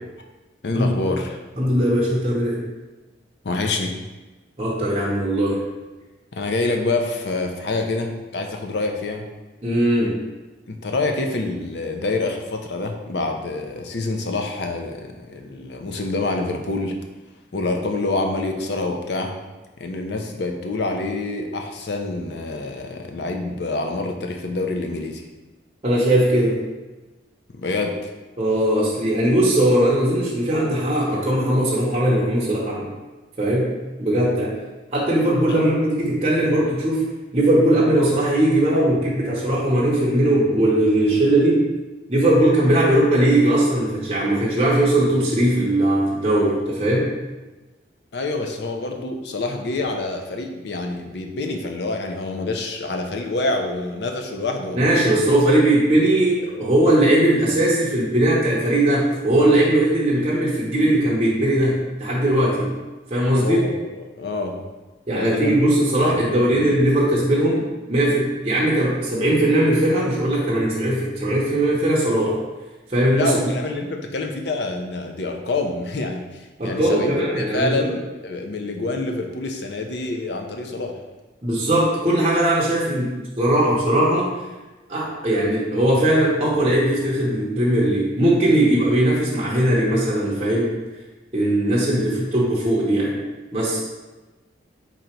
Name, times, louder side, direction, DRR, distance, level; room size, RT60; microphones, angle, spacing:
voice 1, 0.6-1.4 3.4-3.9 6.3-9.3 10.7-17.0 17.5-19.3 19.8-25.2 27.5-28.1 35.5-35.6 48.1-55.0 63.4-64.6 65.1-65.6 66.0-66.8 73.1-81.0, left 2 dB, 65° left, 3 dB, 0.5 m, -27 dB
voice 2, 1.6-2.6 4.6-5.6 9.6-10.2 25.8-26.6 28.4-32.9 33.4-33.7 34.0-34.5 34.9-37.0 37.3-41.6 42.1-47.1 54.7-62.7 63.1-63.6 65.1-67.6 67.9-72.4 72.9-73.3 76.6-77.9 81.4-83.1 83.4-84.3 84.9-90.7 91.3-93.2 93.5-93.8, right 1 dB, 30° right, -5 dB, 0.8 m, -19 dB
3.8 x 2.9 x 4.4 m, 1.2 s
head